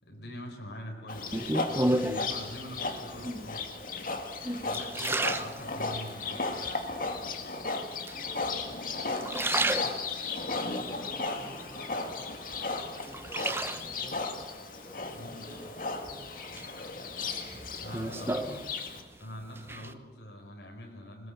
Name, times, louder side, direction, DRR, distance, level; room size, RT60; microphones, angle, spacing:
voice 1, 0.0-3.7 4.6-6.5 15.1-15.5 17.8-18.5 19.2-21.3, equal, 75° left, 2 dB, 4.7 m, -44 dB
Livestock farm animals working animals, 1.1-19.0, left 3 dB, 50° left, 2.2 m, -35 dB
sound 1, 1.3-2.4 3.2-3.7 4.2-6.2 6.7-7.3 8.1-8.7 9.1-10.4 10.9-12.1 12.5-14.1 15.5-16.1 16.6-19.2 19.4-19.9, right 1 dB, 15° right, 0.8 m, -33 dB
voice 2, 4.4-4.9 7.0-9.9 10.6-18.4, equal, 15° left, 1 dB, 4.0 m, -52 dB
21.5 x 20.5 x 8.0 m, 1.2 s
head